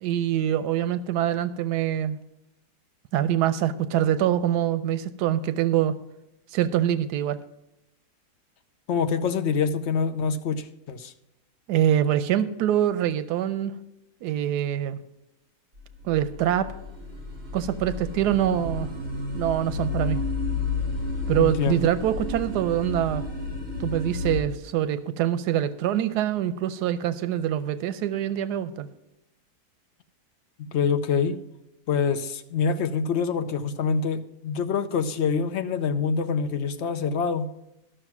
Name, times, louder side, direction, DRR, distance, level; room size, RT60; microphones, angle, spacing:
voice 1, 0.0-2.2 3.1-5.9 6.5-7.4 11.7-13.7 14.2-15.0 16.0-16.7 17.5-18.9 19.3-20.2 21.3-23.2 23.8-28.9, right 11 dB, 90° right, 13 dB, 1.2 m, -24 dB
voice 2, 8.9-11.1 21.4-21.9 30.6-31.4 31.9-37.5, left 6 dB, 60° left, 8 dB, 0.8 m, -26 dB
sound 1, 15.8-24.4, left 3 dB, 50° right, 3.1 m, -31 dB
12.5 x 6.4 x 6.0 m, 0.88 s
omnidirectional pair, 1.7 m